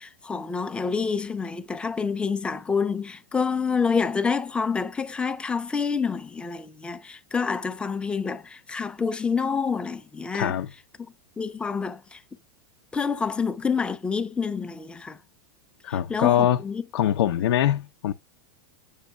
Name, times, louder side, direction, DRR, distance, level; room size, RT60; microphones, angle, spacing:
voice 1, 0.0-10.6 11.4-12.2 12.9-15.2 15.9-16.8, left 5 dB, 10° left, 0.4 m, -27 dB
voice 2, 10.3-10.7 15.8-16.6 16.9-18.1, left 11 dB, 90° left, 0.6 m, -23 dB
8.2 x 6.3 x 2.2 m
supercardioid pair, 155°, 13 cm